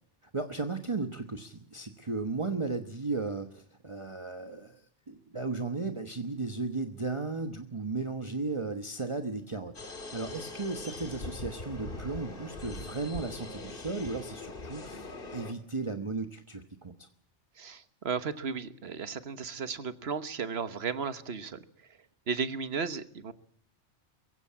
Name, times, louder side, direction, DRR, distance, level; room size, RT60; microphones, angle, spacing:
voice 1, 0.3-16.9, right 3 dB, 25° right, 6 dB, 1.2 m, -35 dB
sound 1, 9.7-15.5, left 2 dB, 50° left, 2.1 m, -42 dB
voice 2, 17.6-21.6 22.3-23.3, right 5 dB, 60° right, 12 dB, 1.4 m, -34 dB
23.5 x 16.0 x 8.6 m, 0.64 s
omnidirectional pair, 1.2 m